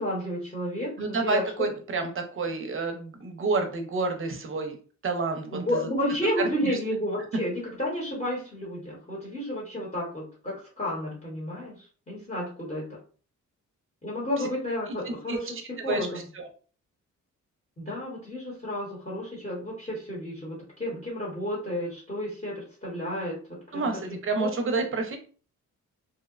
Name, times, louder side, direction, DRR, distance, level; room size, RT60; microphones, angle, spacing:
voice 1, 0.0-1.7 5.5-12.9 14.0-15.6 15.8-16.2 17.8-24.5, left 1 dB, 20° left, -5 dB, 0.9 m, -31 dB
voice 2, 1.0-4.7 5.0-5.6 15.3-15.4 15.9-16.1 16.4-16.5 23.7-25.2, right 3 dB, 40° right, 5 dB, 0.6 m, -29 dB
2.7 x 2.0 x 2.3 m, 0.39 s
wide cardioid pair, 130°, 31 cm